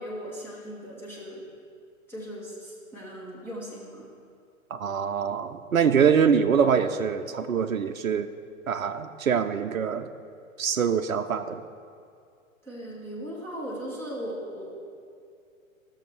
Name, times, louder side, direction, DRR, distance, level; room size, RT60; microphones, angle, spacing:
voice 1, 0.0-1.4 2.1-4.1 12.6-14.6, equal, 5° left, -7 dB, 1.9 m, -38 dB
voice 2, 4.7-8.3 8.7-10.1 10.6-11.6, right 7 dB, 70° right, 7 dB, 0.7 m, -24 dB
17.0 x 6.6 x 6.1 m, 2.3 s
figure-of-eight pair, 115°, 41 cm